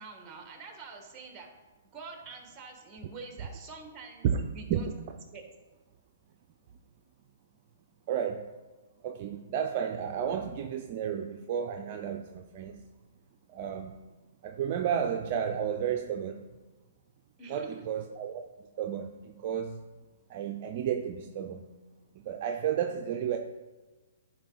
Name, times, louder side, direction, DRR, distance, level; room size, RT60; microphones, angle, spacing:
voice 1, 0.0-1.5 1.9-4.9 5.3-5.4 17.4-17.9, right 4 dB, 20° right, 3 dB, 1.6 m, -46 dB
voice 2, 8.1-8.5 9.0-12.8 13.5-13.9 14.4-16.4 17.5-18.4 18.8-19.8 20.3-21.6 22.1-23.4, right 8 dB, 45° right, 4 dB, 0.6 m, -32 dB
11.0 x 4.9 x 4.1 m, 1.2 s
hypercardioid pair, 140°, 0 cm